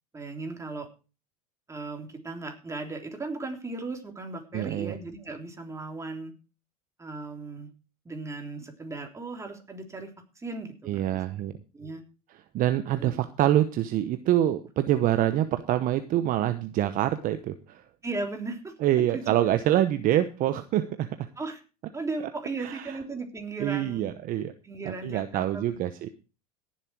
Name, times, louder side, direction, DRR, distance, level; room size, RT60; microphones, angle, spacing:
voice 1, 0.1-0.9 1.7-6.3 7.0-7.7 8.0-11.2 11.7-12.0 13.0-13.1 18.0-18.7 19.1-19.4 21.4-21.6 21.9-24.1 24.6-25.8, right 3 dB, 15° right, 3 dB, 3.4 m, -36 dB
voice 2, 4.5-4.9 10.9-11.5 12.5-17.8 18.8-21.3 22.6-23.0 23.6-24.5 24.8-26.2, right 12 dB, 45° right, 10 dB, 1.0 m, -26 dB
17.5 x 7.6 x 4.7 m, 0.33 s
hypercardioid pair, 100°, 19 cm